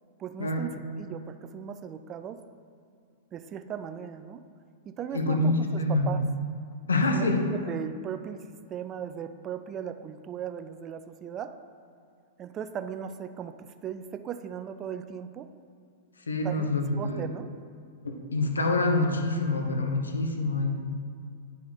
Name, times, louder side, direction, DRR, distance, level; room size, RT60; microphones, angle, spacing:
voice 1, 0.2-2.4 3.3-4.4 4.9-6.2 7.1-7.3 7.7-11.5 12.4-15.5 16.4-16.7 17.0-17.6, right 8 dB, 30° right, 10 dB, 0.4 m, -38 dB
voice 2, 5.1-6.1 6.9-7.4 16.3-17.3 18.0-20.8, left 2 dB, 85° left, 3 dB, 0.9 m, -26 dB
9.3 x 4.8 x 4.3 m, 2.3 s
hypercardioid pair, 105°, 0 cm